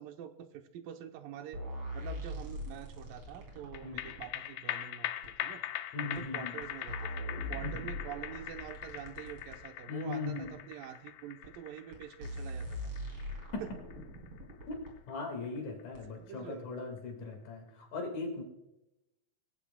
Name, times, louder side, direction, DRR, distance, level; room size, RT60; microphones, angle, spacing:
voice 1, 0.0-1.6 1.9-5.1 5.4-5.6 6.0-12.9 13.6-13.7 16.2-16.7, right 10 dB, 80° right, 6 dB, 2.5 m, -46 dB
sound 1, 1.5-4.3 5.2-5.3 6.1-6.2 6.6-9.6 10.4-10.5 11.4-11.5 11.9-12.0 12.2-14.9 15.9-16.0, equal, 45° right, 4.3 m, -41 dB
sound 2, 3.7-16.4 16.7-16.8, left 13 dB, 80° left, 1.7 m, -42 dB
voice 2, 5.9-6.6 7.6-7.8 9.9-10.5 10.9-11.0 13.5-13.6 14.7-14.8 15.1-18.4, left 3 dB, 60° left, 3 dB, 3.3 m, -39 dB
22.5 x 15.0 x 2.2 m, 0.94 s
omnidirectional pair, 4.0 m